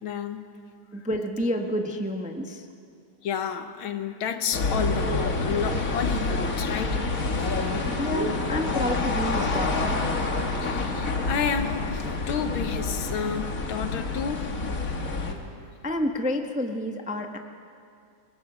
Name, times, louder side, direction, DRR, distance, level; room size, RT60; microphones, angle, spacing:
voice 1, 0.0-0.5 3.2-7.1 7.4-7.9 10.6-14.6, left 7 dB, 80° left, 1.9 m, -31 dB
voice 2, 0.9-2.7 8.0-10.1 15.8-17.4, left 1 dB, 5° right, 0.6 m, -29 dB
sound 1, 4.5-15.3, left 3 dB, 45° left, 2.0 m, -27 dB
25.5 x 20.5 x 6.2 m
omnidirectional pair, 2.2 m